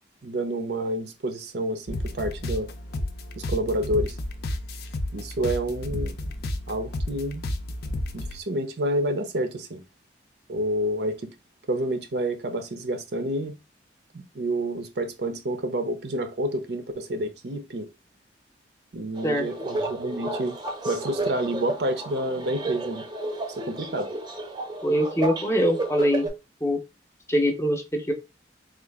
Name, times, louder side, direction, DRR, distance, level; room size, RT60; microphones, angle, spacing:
voice 1, 0.2-2.7 3.4-4.2 5.1-6.2 6.7-7.4 8.1-9.8 10.5-11.3 11.7-13.6 14.1-17.9 18.9-20.6 20.8-23.0 23.6-24.1, right 1 dB, 65° right, 0.6 m, -29 dB
sound 1, 1.9-8.4, left 1 dB, 60° left, 0.5 m, -32 dB
sound 2, 19.2-26.3, right 2 dB, 25° right, 0.6 m, -32 dB
voice 2, 24.8-26.3 26.6-26.8 27.3-28.1, equal, 15° left, 0.6 m, -23 dB
3.7 x 2.4 x 3.4 m
head